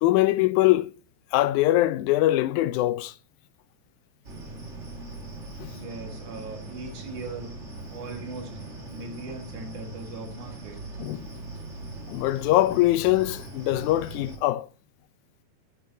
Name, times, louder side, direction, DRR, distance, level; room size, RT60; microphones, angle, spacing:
voice 1, 0.0-0.9 1.3-3.1 5.6-5.7 11.0-11.3 12.1-14.7, left 16 dB, 85° left, 2.0 m, -22 dB
sound 1, 4.2-14.4, right 2 dB, 30° right, 1.8 m, -40 dB
voice 2, 5.6-7.6 7.9-8.6 8.9-10.8, right 3 dB, 90° right, 3.2 m, -39 dB
9.9 x 8.9 x 2.7 m
omnidirectional pair, 3.4 m